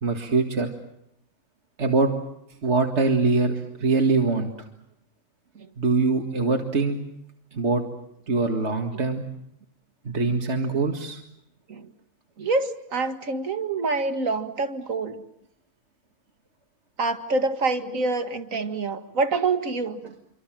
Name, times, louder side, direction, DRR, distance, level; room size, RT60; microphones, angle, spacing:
voice 1, 0.0-0.7 1.8-2.1 2.6-4.5 5.8-7.0 7.5-7.8 8.3-9.2 10.1-11.2, right 3 dB, 55° right, 4 dB, 2.3 m, -23 dB
voice 2, 12.4-15.2 17.0-20.0, right 3 dB, 85° right, 8 dB, 2.3 m, -26 dB
27.5 x 25.0 x 7.7 m, 0.79 s
omnidirectional pair, 1.4 m